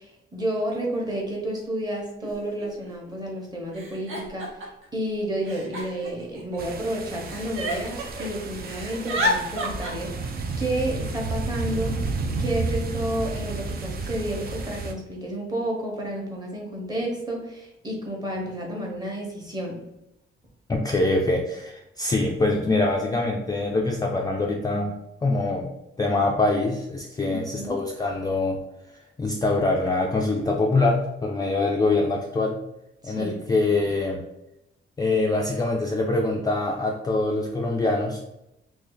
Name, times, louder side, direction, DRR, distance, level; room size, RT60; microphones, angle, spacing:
voice 1, 0.0-4.5 4.9-10.1 10.6-12.0 12.4-19.8 27.3-27.8 33.0-33.4, right 1 dB, 20° right, -1 dB, 0.9 m, -30 dB
Giggle, 1.1-1.2 2.2-2.3 2.6-3.1 3.7-4.8 5.5-6.8 7.2-8.3 8.6-9.9, equal, 75° right, 1.0 m, -30 dB
sound 1, 6.6-14.9, right 3 dB, 45° right, 0.4 m, -31 dB
voice 2, 20.7-25.0 25.2-28.6 29.2-32.6 33.0-34.2 35.0-38.2, left 2 dB, 20° left, -1 dB, 0.3 m, -24 dB
2.8 x 2.7 x 3.8 m, 0.87 s
wide cardioid pair, 135°, 21 cm